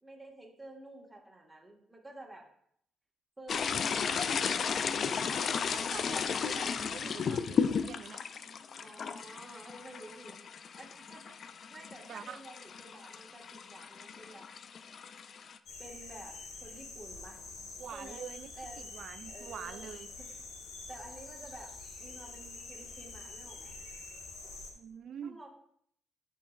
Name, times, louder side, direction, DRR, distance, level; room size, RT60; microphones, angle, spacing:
voice 1, 0.0-2.5 3.4-4.5 5.1-5.2 8.7-10.4 10.7-11.4 11.7-14.5 15.8-17.4 17.9-18.3 18.6-18.9 19.3-19.9 20.2-20.3 20.9-23.8 25.2-25.5, right 2 dB, 15° right, -1 dB, 1.6 m, -51 dB
sound 1, 3.5-15.6, left 6 dB, 55° left, 0.4 m, -34 dB
voice 2, 5.3-8.2 12.1-12.4 17.8-18.5 18.8-20.1 24.8-25.4, right 8 dB, 65° right, 11 dB, 0.3 m, -45 dB
sound 2, 15.7-24.7, left 3 dB, 75° left, 1.3 m, -46 dB
11.5 x 4.5 x 2.4 m, 0.67 s
cardioid pair, 90°, 0 cm